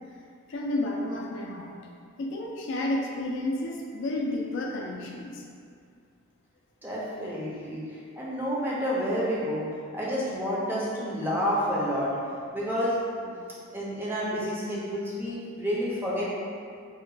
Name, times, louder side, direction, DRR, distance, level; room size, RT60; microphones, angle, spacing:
voice 1, 0.5-1.7 2.2-5.4, left 1 dB, 55° left, -1 dB, 0.3 m, -31 dB
voice 2, 6.8-12.1 12.5-13.0 13.2-13.3 13.7-16.4, equal, 10° right, -6 dB, 0.4 m, -29 dB
2.7 x 2.2 x 3.9 m, 2.2 s
head